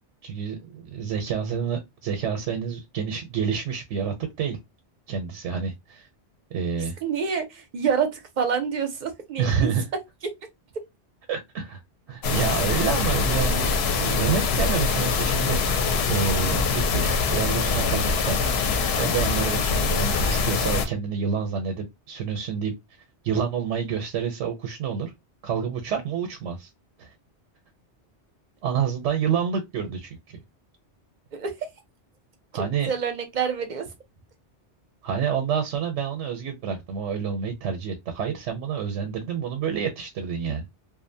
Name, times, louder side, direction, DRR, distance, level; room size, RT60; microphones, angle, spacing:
voice 1, 0.2-4.6 5.1-6.1 6.5-6.9 9.4-9.8 11.3-11.8 12.1-15.6 16.1-18.4 19.0-22.7 23.2-25.1 25.4-26.7 27.0-27.1 28.6-30.4 32.5-32.9 35.0-40.6, right 7 dB, 90° right, 1.0 m, -28 dB
voice 2, 7.0-9.7 31.3-31.5 32.5-33.9, right 7 dB, 50° right, 0.6 m, -27 dB
sound 1, 12.2-20.9, left 4 dB, 70° left, 0.8 m, -23 dB
2.6 x 2.1 x 2.6 m
omnidirectional pair, 1.2 m